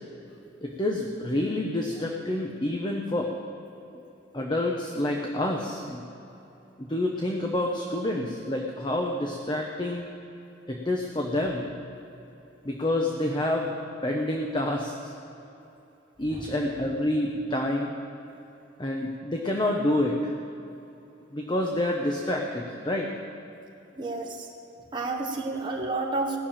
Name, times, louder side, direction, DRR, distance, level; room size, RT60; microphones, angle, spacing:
voice 1, 0.6-3.3 3.9-4.0 4.3-6.0 6.8-10.1 10.7-11.7 12.6-13.7 14.0-15.1 16.2-17.9 18.8-20.3 21.3-23.1, left 1 dB, 25° left, 0 dB, 1.0 m, -28 dB
voice 2, 23.9-24.5 24.9-26.4, right 3 dB, 25° right, -3 dB, 1.4 m, -30 dB
17.5 x 7.0 x 8.8 m, 2.9 s
head